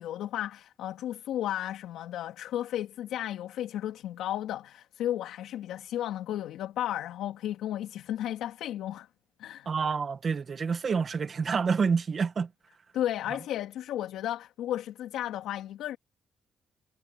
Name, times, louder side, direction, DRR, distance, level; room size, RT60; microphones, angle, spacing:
voice 1, 0.0-9.1 9.4-9.7 12.9-16.0, left 12 dB, 85° left, 2.7 m, -34 dB
voice 2, 9.6-12.5, right 5 dB, 45° right, 1.5 m, -28 dB
cardioid pair, 90°, 0 cm